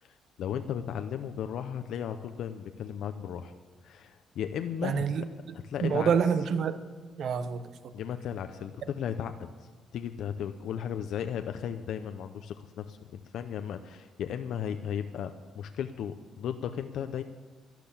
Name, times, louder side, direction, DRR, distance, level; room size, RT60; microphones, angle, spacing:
voice 1, 0.0-3.5 3.8-5.3 5.7-6.1 7.9-17.2, left 8 dB, 75° left, 8 dB, 0.7 m, -35 dB
voice 2, 4.8-5.3 5.8-6.8 7.2-7.9, right 7 dB, 60° right, 11 dB, 1.0 m, -27 dB
12.0 x 12.0 x 7.1 m, 1.5 s
cardioid pair, 115°, 0 cm